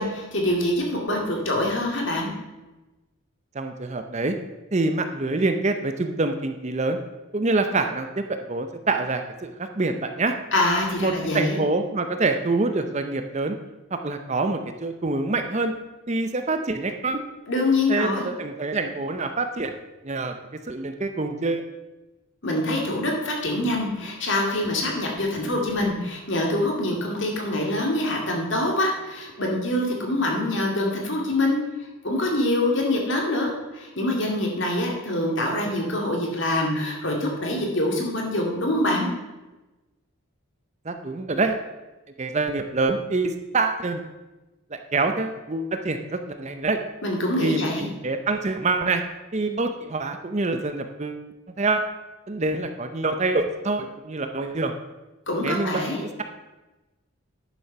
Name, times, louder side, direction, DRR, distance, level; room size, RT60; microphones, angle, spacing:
voice 1, 0.0-2.3 10.5-11.6 17.5-18.3 22.4-31.6 32.0-39.1 47.0-47.9 55.3-56.0, left 1 dB, 55° left, 0 dB, 2.3 m, -25 dB
voice 2, 3.5-4.4 4.7-7.0 7.3-10.4 11.0-13.6 13.9-15.7 16.1-17.2 17.9-19.7 20.0-20.3 20.7-21.6 40.8-41.6 42.2-44.0 44.7-46.8 47.4-49.0 49.3-51.2 51.6-51.8 52.3-54.7 55.4-56.2, right 3 dB, 30° right, 7 dB, 0.6 m, -26 dB
10.0 x 7.0 x 5.8 m, 1.1 s
head